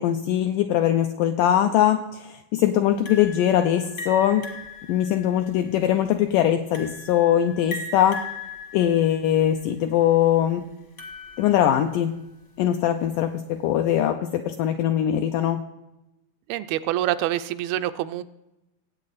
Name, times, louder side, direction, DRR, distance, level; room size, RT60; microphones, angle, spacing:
voice 1, 0.0-4.5 4.9-8.2 8.7-10.7 11.4-12.1 12.6-15.6, left 11 dB, 85° left, 6 dB, 1.9 m, -21 dB
sound 1, 3.0-12.3, left 3 dB, 45° left, 0.9 m, -39 dB
voice 2, 16.5-18.2, right 13 dB, 85° right, 12 dB, 2.3 m, -26 dB
18.5 x 8.5 x 4.1 m, 0.93 s
omnidirectional pair, 4.4 m